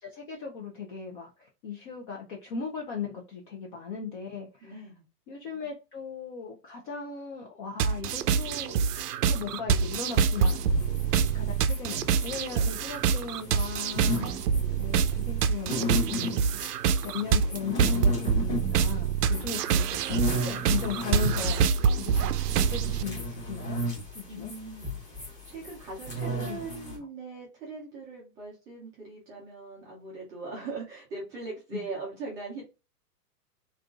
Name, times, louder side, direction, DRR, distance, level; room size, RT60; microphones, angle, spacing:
voice 1, 0.0-4.8 5.3-8.9 9.3-10.6 11.3-14.3 14.8-16.6 17.0-20.2 20.4-21.7 22.0-23.8 24.1-24.5 26.2-26.6 31.7-31.8, left 6 dB, 30° left, -1 dB, 0.6 m, -38 dB
voice 2, 4.6-5.0 19.3-19.7 24.3-32.7, right 3 dB, 10° right, -5 dB, 0.4 m, -41 dB
sound 1, 7.8-23.0, right 6 dB, 75° right, 0.6 m, -26 dB
sound 2, 10.3-27.0, equal, 15° left, 1.2 m, -35 dB
3.4 x 2.6 x 2.3 m, 0.29 s
hypercardioid pair, 135°, 48 cm